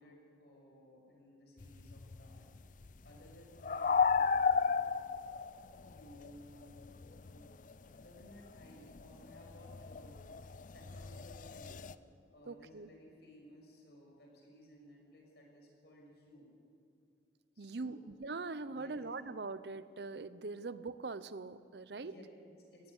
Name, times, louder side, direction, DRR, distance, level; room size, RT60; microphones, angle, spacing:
voice 1, 0.0-2.4 3.0-4.8 5.8-11.9 12.3-16.5 17.5-18.0 18.7-19.0 22.0-22.9, left 1 dB, 65° left, -1 dB, 6.3 m, -58 dB
sound 1, 1.6-7.7 8.0-11.9, left 5 dB, 45° left, 0.5 m, -34 dB
voice 2, 12.5-12.9 17.6-22.1, right 3 dB, 65° right, 15 dB, 0.7 m, -42 dB
18.0 x 15.0 x 9.8 m, 2.5 s
head